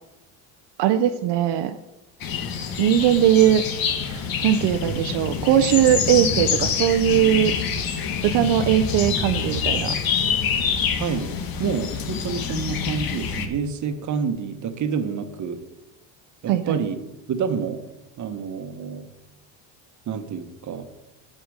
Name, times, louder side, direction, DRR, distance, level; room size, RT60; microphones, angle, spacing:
voice 1, 0.8-1.7 2.8-3.6 4.1-7.5 8.2-9.9 16.5-16.8, right 11 dB, 70° right, 7 dB, 0.7 m, -20 dB
sound 1, 2.2-13.5, left 6 dB, 55° left, 1.6 m, -26 dB
voice 2, 11.0-15.6 16.4-17.0 17.3-17.8 18.2-19.1 20.1-20.9, right 6 dB, 40° right, 8 dB, 1.2 m, -28 dB
8.1 x 7.7 x 6.5 m, 0.98 s
cardioid pair, 110°, 43 cm